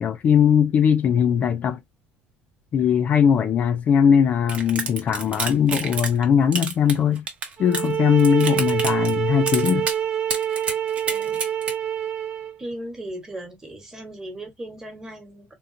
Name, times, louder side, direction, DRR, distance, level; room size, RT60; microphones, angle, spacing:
voice 1, 0.0-1.8 2.7-7.2 7.6-9.9, left 8 dB, 40° left, 0.4 m, -19 dB
sound 1, 4.5-6.2 6.5-7.9 8.2-9.1 9.5-10.0 10.3-11.7, right 5 dB, 30° right, 0.9 m, -28 dB
sound 2, 7.6-12.6, right 9 dB, 55° right, 1.1 m, -26 dB
voice 2, 11.1-11.5 12.6-15.5, right 1 dB, 15° right, 1.2 m, -37 dB
3.7 x 2.3 x 2.6 m
cardioid pair, 155°, 4 cm